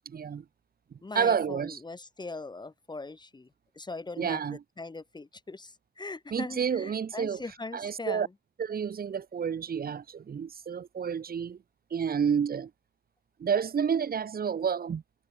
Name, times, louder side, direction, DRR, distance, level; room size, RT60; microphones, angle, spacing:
voice 1, 0.1-0.4 1.1-1.8 4.2-4.6 6.3-7.4 7.7-8.3 8.6-11.6 11.9-12.7 13.4-15.0, right 7 dB, 50° right, 5.6 m, -29 dB
voice 2, 1.0-3.5 3.7-4.4 4.8-8.3, left 3 dB, 20° left, 4.4 m, -40 dB
cardioid pair, 90°, 20 cm